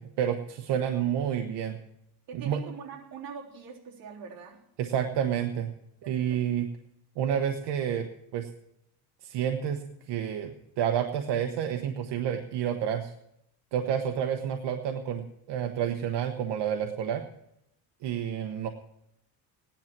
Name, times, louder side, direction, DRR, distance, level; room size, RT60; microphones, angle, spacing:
voice 1, 0.0-1.8 2.4-2.6 4.8-5.7 6.1-6.7 7.2-8.1 8.3-8.5 9.2-13.1 13.7-17.2 18.0-18.7, right 9 dB, 75° right, 5 dB, 1.2 m, -29 dB
voice 2, 2.3-4.6 6.0-6.4, right 6 dB, 55° right, -3 dB, 3.4 m, -43 dB
17.0 x 10.5 x 6.0 m, 0.80 s
cardioid pair, 140°, 42 cm